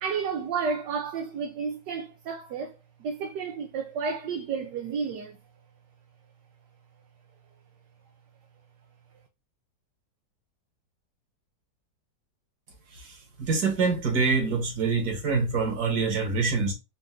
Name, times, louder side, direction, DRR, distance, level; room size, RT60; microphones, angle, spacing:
voice 1, 0.0-2.7 3.0-5.4, right 5 dB, 75° right, 1.2 m, -31 dB
voice 2, 12.9-16.7, right 4 dB, 60° right, 1.8 m, -26 dB
4.4 x 2.5 x 3.6 m
omnidirectional pair, 2.0 m